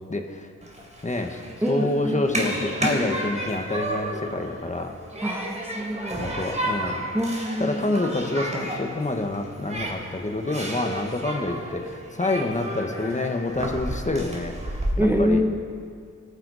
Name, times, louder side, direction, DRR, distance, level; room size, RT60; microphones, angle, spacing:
voice 1, 0.1-0.5 1.0-1.4 1.7-4.9 6.2-7.0 7.6-15.4, left 2 dB, 25° left, 4 dB, 1.5 m, -27 dB
Human group actions, 0.6-14.9, right 1 dB, 25° right, 3.6 m, -32 dB
voice 2, 1.6-2.2 5.2-6.2 7.1-7.8 15.0-15.5, equal, 5° right, 2 dB, 1.0 m, -25 dB
21.5 x 10.0 x 4.2 m, 2.2 s
cardioid pair, 70°, 29 cm